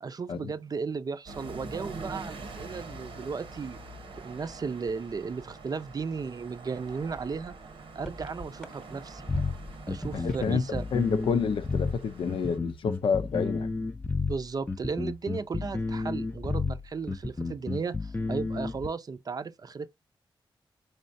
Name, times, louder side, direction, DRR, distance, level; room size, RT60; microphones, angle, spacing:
voice 1, 0.0-3.8 4.2-7.5 7.9-9.3 9.9-10.8 14.3-19.9, right 5 dB, 45° right, 0.5 m, -35 dB
sound 1, 1.3-12.6, right 3 dB, 85° right, 0.9 m, -44 dB
sound 2, 7.6-7.7 7.9-10.8 11.0-12.1 12.4-12.7, left 1 dB, 5° left, 0.8 m, -40 dB
sound 3, 9.3-18.9, left 3 dB, 20° left, 0.4 m, -31 dB
voice 2, 10.1-10.7 10.9-13.7, left 6 dB, 80° left, 0.5 m, -28 dB
4.2 x 3.2 x 2.6 m
wide cardioid pair, 90°, 9 cm